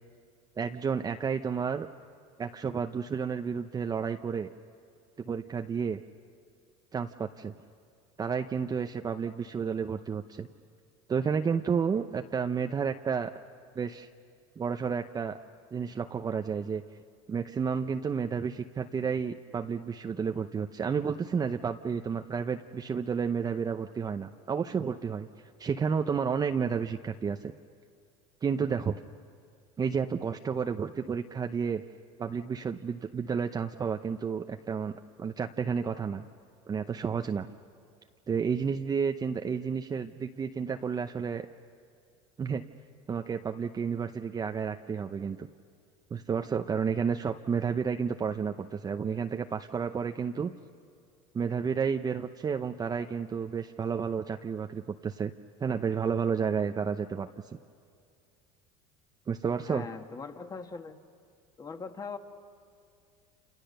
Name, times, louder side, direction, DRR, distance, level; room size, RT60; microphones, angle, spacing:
voice 1, 0.6-1.9 2.4-4.5 5.3-6.0 6.9-7.5 8.2-10.5 11.1-13.3 13.8-14.1 14.6-15.4 15.7-16.8 17.3-25.3 25.6-27.5 28.4-29.0 29.8-31.8 32.2-34.9 35.2-36.2 36.7-37.5 38.3-41.5 42.4-42.6 43.1-45.5 46.1-50.5 51.3-55.3 55.6-57.3 59.3-59.9, right 6 dB, 20° right, 6 dB, 0.8 m, -31 dB
voice 2, 59.7-61.0 61.6-62.2, left 5 dB, 20° left, 6 dB, 1.8 m, -40 dB
29.0 x 28.5 x 6.7 m, 2.4 s
supercardioid pair, 125°, 17 cm